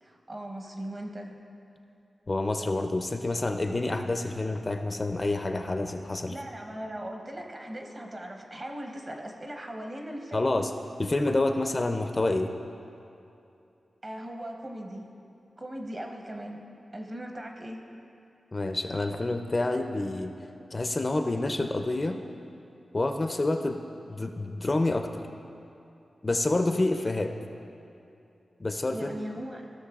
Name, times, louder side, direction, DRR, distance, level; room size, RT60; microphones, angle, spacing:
voice 1, 0.0-1.4 6.3-10.5 14.0-15.1 15.6-16.6 16.9-17.8 28.9-29.6, right 1 dB, 35° right, 2 dB, 0.9 m, -39 dB
voice 2, 2.3-6.3 10.3-10.7 11.0-12.5 18.5-20.3 20.7-22.2 22.9-23.8 24.1-25.2 26.2-27.3 28.6-29.3, left 2 dB, 30° left, 6 dB, 0.4 m, -28 dB
16.5 x 6.3 x 2.4 m, 2.7 s
wide cardioid pair, 120°, 0 cm